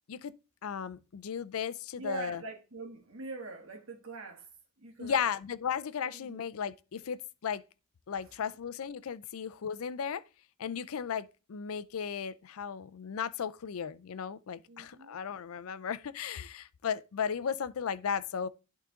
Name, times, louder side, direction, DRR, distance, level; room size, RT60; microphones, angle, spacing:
voice 1, 0.6-2.4 5.0-7.6 8.1-10.2 10.6-18.5, left 7 dB, 75° left, 0.4 m, -35 dB
voice 2, 1.9-4.5 4.8-5.2 6.1-6.4 14.7-15.2, right 3 dB, 70° right, 1.6 m, -43 dB
11.0 x 3.7 x 3.7 m
head